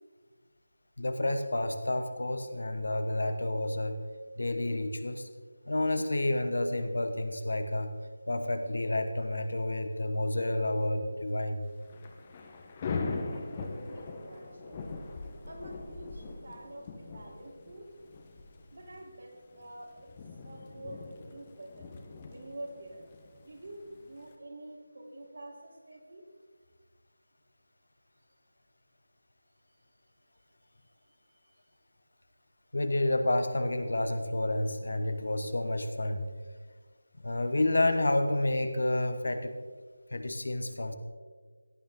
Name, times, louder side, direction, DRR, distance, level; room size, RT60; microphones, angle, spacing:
voice 1, 1.0-4.0 4.4-5.3 5.7-7.9 8.3-11.7 32.7-36.3 37.2-39.5 40.1-40.9, left 1 dB, 70° left, 8 dB, 1.3 m, -30 dB
Thunder / Rain, 11.7-24.3, left 4 dB, 25° left, 1.1 m, -41 dB
voice 2, 13.3-14.8 15.4-17.9 18.7-19.9 20.4-21.9 22.3-23.0 23.4-26.2 30.7-31.7, right 1 dB, 65° right, -1 dB, 3.7 m, -47 dB
16.5 x 9.0 x 3.8 m, 1.5 s
figure-of-eight pair, 165°, 0 cm